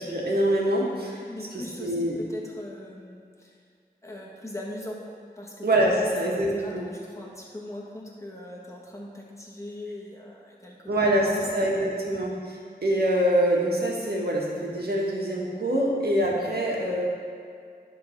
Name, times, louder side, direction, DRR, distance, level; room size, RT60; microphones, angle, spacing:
voice 1, 0.0-1.2 1.5-2.2 5.6-6.9 10.9-17.0, right 1 dB, 70° right, -3 dB, 1.6 m, -25 dB
voice 2, 1.2-3.6 4.0-5.0 5.4-6.1 6.5-11.5 11.8-11.9, left 1 dB, 15° left, -3 dB, 1.6 m, -40 dB
11.0 x 3.8 x 5.9 m, 2.3 s
wide cardioid pair, 70°, 17 cm